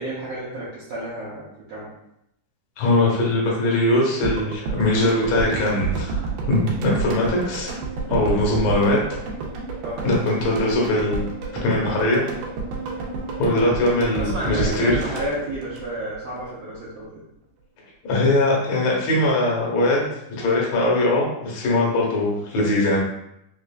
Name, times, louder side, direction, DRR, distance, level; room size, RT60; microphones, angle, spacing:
voice 1, 0.0-1.9 9.8-10.0 14.2-17.2, right 1 dB, 70° right, -9 dB, 1.7 m, -31 dB
voice 2, 2.8-6.2 6.5-7.8 8.1-9.0 10.0-11.3 11.5-12.2 13.4-15.0 18.0-20.1 20.4-23.0, left 1 dB, 65° left, -3 dB, 1.8 m, -21 dB
sound 1, 4.2-16.4 16.7-16.8, right 4 dB, 85° right, 2.2 m, -30 dB
5.0 x 2.4 x 2.2 m, 0.79 s
omnidirectional pair, 3.7 m